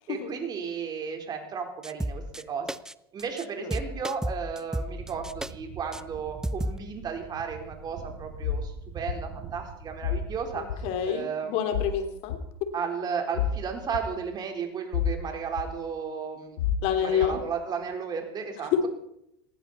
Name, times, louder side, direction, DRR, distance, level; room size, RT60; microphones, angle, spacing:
voice 1, 0.1-2.7 3.1-11.6 12.7-16.6 17.0-18.7, right 6 dB, 35° right, 4 dB, 4.3 m, -34 dB
sound 1, 1.8-2.4 2.7-2.9 3.2-3.4 3.7-5.5 5.9-6.0 6.4-6.8, right 1 dB, 5° right, 0.6 m, -32 dB
sound 2, 4.8-11.0, right 5 dB, 55° right, 4.7 m, -44 dB
sound 3, 8.4-8.7 9.1-9.2 10.0-10.3 10.7-10.8 11.7-11.9 12.3-12.4 13.3-13.6 13.9-14.0 14.9-15.2 15.6-15.7 16.6-16.8 17.2-17.3, left 8 dB, 75° left, 2.1 m, -28 dB
voice 2, 10.5-12.4 16.8-17.4 18.7-18.9, left 8 dB, 55° left, 7 dB, 3.2 m, -28 dB
19.5 x 16.0 x 4.4 m, 0.77 s
hypercardioid pair, 95°, 12 cm